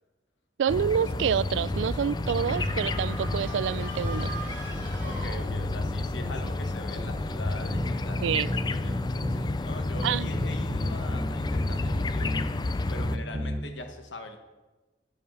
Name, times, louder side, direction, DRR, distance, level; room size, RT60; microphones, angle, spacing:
voice 1, 0.6-4.3 8.2-8.5 10.0-10.3, right 8 dB, 80° right, 21 dB, 0.3 m, -27 dB
sound 1, 0.7-13.2, left 2 dB, 25° left, 0.3 m, -31 dB
sound 2, 1.7-3.5 4.0-6.6 7.0-9.5 10.0-12.5 13.0-13.6, equal, 20° right, 0.9 m, -34 dB
sound 3, 2.2-5.9, right 2 dB, 45° right, 3.4 m, -42 dB
voice 2, 5.0-12.5 12.9-14.4, left 2 dB, 75° left, 5 dB, 1.4 m, -42 dB
9.8 x 8.0 x 6.2 m, 1.2 s
head